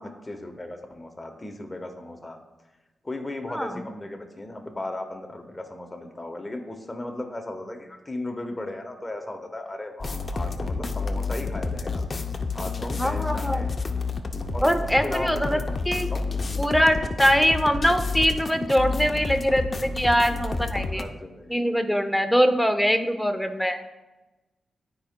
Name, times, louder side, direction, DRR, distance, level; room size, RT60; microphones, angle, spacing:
voice 1, 0.0-2.4 3.0-12.0 12.5-13.8 14.5-14.7 15.0-15.6 15.9-16.3 20.9-21.7, left 2 dB, 20° left, 4 dB, 1.1 m, -36 dB
voice 2, 3.5-3.8 13.0-13.6 14.6-15.6 15.9-16.1 16.6-21.0 21.5-23.8, equal, ahead, 7 dB, 0.6 m, -22 dB
sound 1, 10.0-21.0, left 3 dB, 40° left, 0.5 m, -29 dB
12.0 x 4.8 x 2.2 m, 1.1 s
cardioid pair, 80°, 0 cm